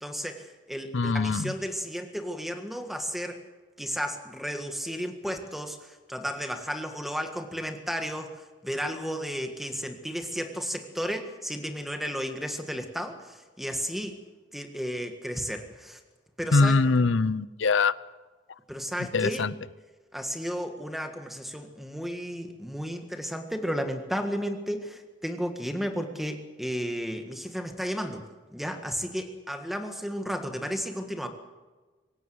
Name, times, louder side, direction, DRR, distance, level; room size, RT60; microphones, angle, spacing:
voice 1, 0.0-3.4 3.8-14.2 14.5-16.0 16.4-16.8 18.7-19.5 20.1-28.3 28.5-31.3, equal, ahead, 5 dB, 1.7 m, -33 dB
voice 2, 0.9-1.5 16.5-17.9 19.0-19.5, left 3 dB, 80° left, 18 dB, 0.7 m, -23 dB
25.5 x 16.5 x 7.9 m, 1.3 s
head